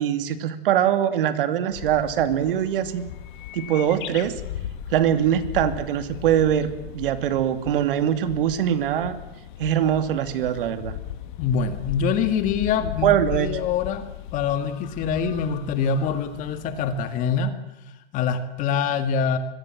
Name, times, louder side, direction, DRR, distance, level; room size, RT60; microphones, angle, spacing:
voice 1, 0.0-3.0 3.5-4.4 4.9-6.7 6.9-9.2 9.6-11.0 12.8-13.5, right 10 dB, 60° right, 10 dB, 2.7 m, -22 dB
sound 1, 1.7-17.4, left 10 dB, 50° left, 1.9 m, -37 dB
voice 2, 11.4-14.1 14.3-17.6 18.1-19.4, left 6 dB, 25° left, 10 dB, 1.8 m, -25 dB
25.5 x 22.5 x 7.6 m, 0.94 s
supercardioid pair, 165°, 30 cm